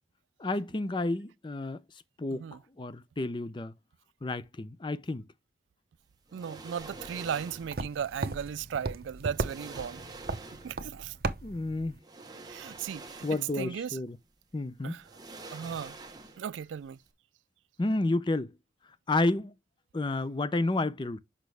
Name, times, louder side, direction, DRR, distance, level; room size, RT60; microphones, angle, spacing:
voice 1, 0.4-1.8 2.2-2.5 2.8-3.7 4.2-5.3 11.4-12.0 13.2-14.2 14.5-15.0 17.8-18.5 19.1-19.5 19.9-21.2, left 2 dB, 25° left, 0.5 m, -30 dB
sound 1, 6.3-7.8 8.8-8.9 9.3-10.9 12.0-13.7 14.1-14.2 15.0-16.6 16.9-17.0, right 3 dB, 20° right, 1.1 m, -46 dB
voice 2, 6.3-10.0 10.6-11.2 12.5-14.0 14.8-15.1 15.5-16.0 16.4-17.0, right 8 dB, 80° right, 0.3 m, -36 dB
sound 2, 6.8-12.0, right 3 dB, 50° right, 0.7 m, -37 dB
6.2 x 5.7 x 3.3 m
head